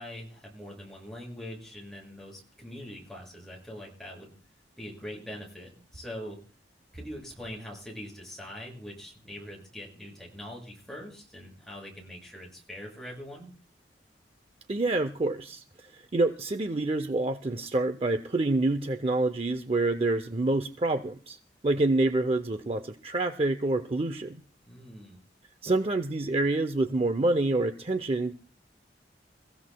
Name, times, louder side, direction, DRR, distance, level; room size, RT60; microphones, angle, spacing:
voice 1, 0.0-4.3 4.8-6.4 6.9-13.5 24.7-25.2, left 1 dB, ahead, -2 dB, 6.6 m, -43 dB
voice 2, 14.7-15.6 15.9-21.4 21.6-24.4 25.6-28.3, right 2 dB, 35° right, 9 dB, 0.6 m, -27 dB
28.5 x 15.5 x 2.3 m, 0.38 s
head